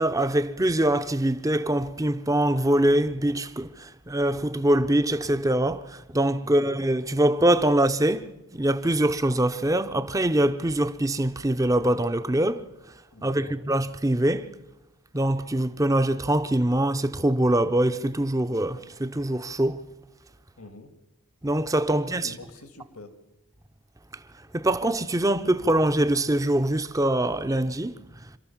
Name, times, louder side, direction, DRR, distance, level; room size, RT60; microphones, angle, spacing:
voice 1, 0.0-12.7 13.2-14.5 15.1-19.8 21.4-22.3 24.5-27.9, right 1 dB, 15° right, 0.7 m, -23 dB
voice 2, 13.1-13.6 20.6-20.9 21.9-23.1, left 2 dB, 80° left, 2.1 m, -45 dB
27.5 x 13.0 x 7.2 m
head